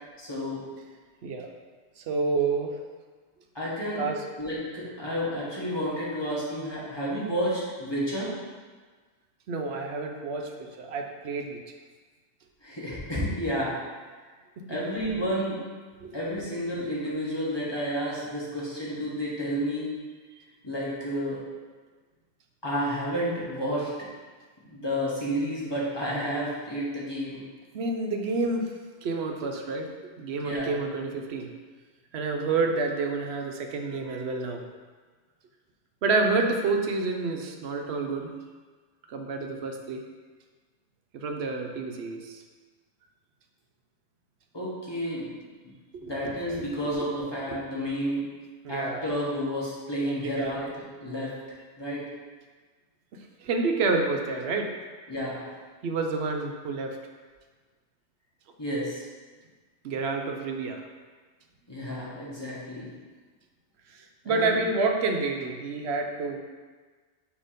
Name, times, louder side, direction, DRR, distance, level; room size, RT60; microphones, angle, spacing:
voice 1, 0.2-0.6 3.5-4.1 4.4-8.3 12.6-13.8 14.7-15.6 16.1-19.9 20.6-21.4 22.6-23.9 24.6-27.4 30.4-30.8 44.5-45.3 46.0-48.2 48.7-52.0 55.1-55.5 58.6-59.1 61.7-62.9 64.2-64.6, equal, 20° left, -7 dB, 1.4 m, -31 dB
voice 2, 2.0-2.8 4.0-4.2 9.5-11.6 14.6-14.7 16.0-16.1 27.7-28.7 29.0-29.9 30.2-31.5 32.1-34.6 36.0-38.3 39.1-40.0 41.1-42.4 45.9-46.3 48.6-49.1 50.1-50.5 53.4-54.8 55.8-57.0 59.8-60.8 63.9-66.4, right 3 dB, 70° right, 3 dB, 0.9 m, -29 dB
6.5 x 2.9 x 5.0 m, 1.4 s
omnidirectional pair, 1.2 m